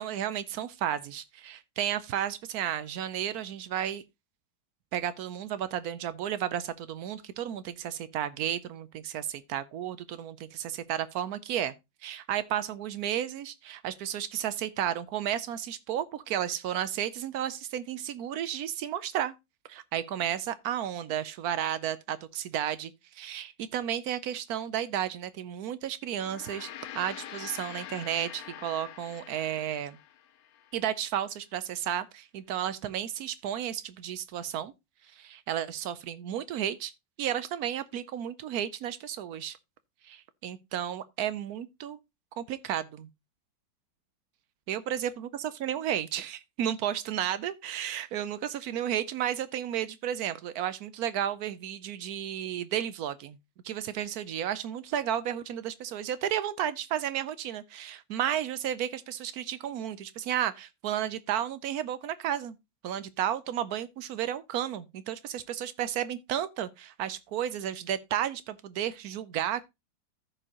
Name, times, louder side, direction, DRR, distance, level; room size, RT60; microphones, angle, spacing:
voice 1, 0.0-4.0 4.9-11.7 12.0-19.3 19.7-30.0 30.7-34.7 35.2-36.9 37.2-39.6 40.0-42.0 42.4-43.1 44.7-53.4 53.6-62.6 62.8-69.7, right 10 dB, 70° right, 0.9 m, -33 dB
Gong, 26.1-30.8, left 11 dB, 70° left, 0.9 m, -45 dB
14.5 x 5.1 x 2.8 m
omnidirectional pair, 2.1 m